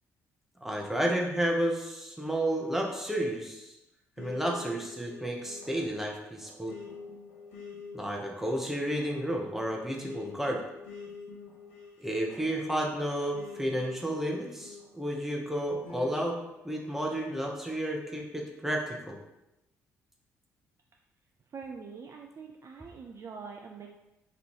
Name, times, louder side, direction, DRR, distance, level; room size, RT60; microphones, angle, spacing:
voice 1, 0.6-3.7 4.2-6.8 7.9-10.6 12.0-16.4 16.6-19.2, right 1 dB, 5° right, 0 dB, 0.8 m, -31 dB
sound 1, 4.2-15.2 15.8-17.4, left 4 dB, 75° left, 0.8 m, -47 dB
voice 2, 21.5-23.9, right 5 dB, 40° right, 2 dB, 0.4 m, -44 dB
3.0 x 2.6 x 4.4 m, 0.93 s
figure-of-eight pair, 45°, 8 cm